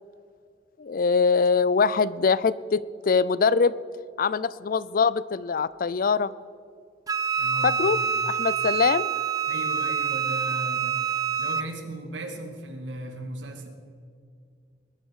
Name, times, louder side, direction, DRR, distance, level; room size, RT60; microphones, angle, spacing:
voice 1, 0.8-3.7 4.2-6.3 7.6-9.1, left 5 dB, 50° left, 18 dB, 0.4 m, -23 dB
Wind instrument woodwind instrument, 7.1-11.7, right 7 dB, 20° right, 0.4 m, -26 dB
voice 2, 7.4-8.1 9.5-11.0 11.4-13.7, right 1 dB, 85° right, 4 dB, 2.1 m, -37 dB
20.5 x 11.0 x 4.8 m, 2.3 s
head